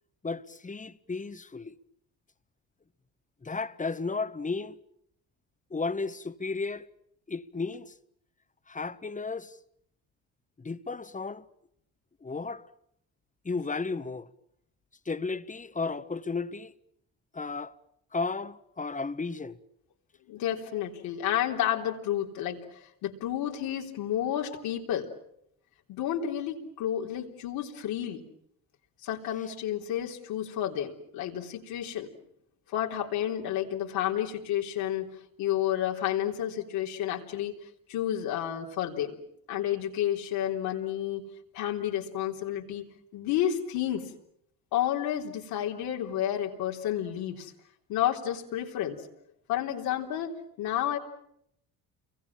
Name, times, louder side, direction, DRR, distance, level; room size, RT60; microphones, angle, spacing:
voice 1, 0.2-1.8 3.4-4.8 5.7-6.9 7.3-7.9 8.7-9.6 10.6-11.5 12.2-12.7 13.4-14.3 15.0-16.7 17.3-17.7 18.1-19.6, left 4 dB, 20° left, 1.3 m, -34 dB
voice 2, 20.3-25.1 25.9-28.2 29.0-32.1 32.7-37.5 37.9-39.2 39.5-41.2 41.5-42.9 43.1-44.1 44.7-47.5 47.9-49.0 49.5-51.0, left 11 dB, 85° left, 3.7 m, -31 dB
30.0 x 23.5 x 7.4 m
supercardioid pair, 75°, 35 cm